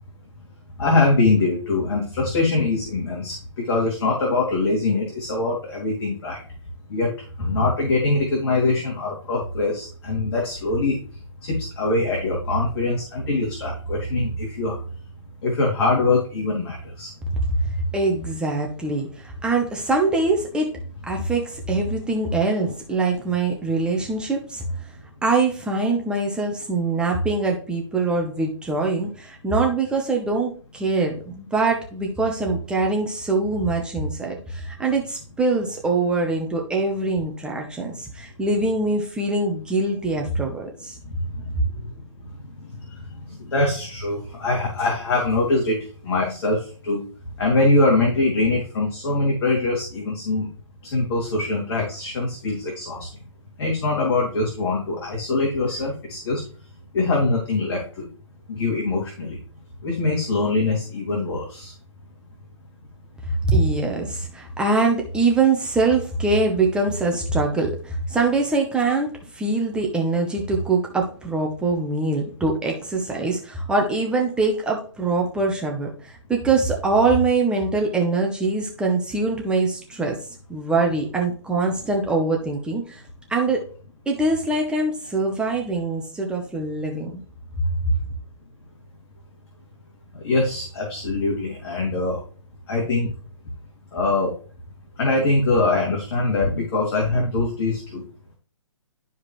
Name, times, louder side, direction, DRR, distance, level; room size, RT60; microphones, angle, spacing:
voice 1, 0.8-6.4 6.9-7.1 7.4-11.0 11.4-14.8 15.4-17.1 41.4-41.5 42.9-43.0 43.3-45.8 46.0-47.0 47.4-50.5 50.9-53.1 53.6-56.4 56.9-58.1 58.5-59.4 59.8-61.7 90.2-92.2 92.7-93.1 93.9-94.3 95.0-98.0, left 2 dB, 50° left, -1 dB, 2.9 m, -23 dB
voice 2, 17.5-20.8 21.0-24.9 25.2-41.0 63.4-83.0 83.3-83.6 84.1-87.2 87.9-88.0, right 3 dB, 5° right, 0 dB, 0.8 m, -23 dB
11.5 x 4.8 x 3.2 m, 0.40 s
hypercardioid pair, 155°, 17 cm